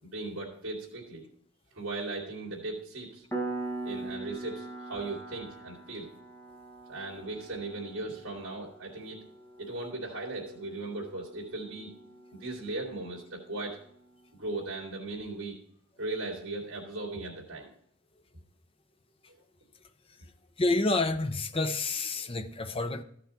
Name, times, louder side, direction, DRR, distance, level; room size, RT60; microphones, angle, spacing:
voice 1, 0.0-1.2 1.7-3.2 3.8-6.1 6.9-9.2 9.6-11.9 12.3-13.8 14.3-15.6 16.0-17.7, right 2 dB, 60° right, 2.8 m, -38 dB
Piano, 3.3-13.7, right 2 dB, 10° left, 1.3 m, -42 dB
voice 2, 20.6-23.0, left 2 dB, 25° left, 0.6 m, -28 dB
14.0 x 6.0 x 4.4 m
head